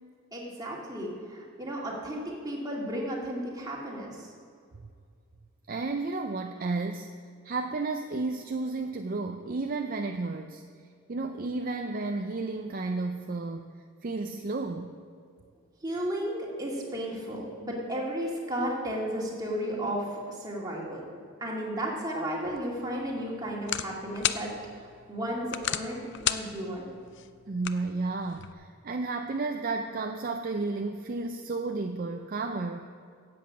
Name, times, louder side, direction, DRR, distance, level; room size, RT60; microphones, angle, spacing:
voice 1, 0.3-4.3 15.8-21.1 21.4-26.9, equal, 15° right, -3 dB, 2.3 m, -34 dB
voice 2, 5.7-7.1 7.4-10.6 11.1-13.7 14.0-14.9 27.5-32.9, right 3 dB, 40° right, 5 dB, 0.5 m, -32 dB
sound 1, 22.4-28.5, left 10 dB, 50° left, 0.5 m, -36 dB
10.5 x 8.0 x 8.3 m, 2.2 s
head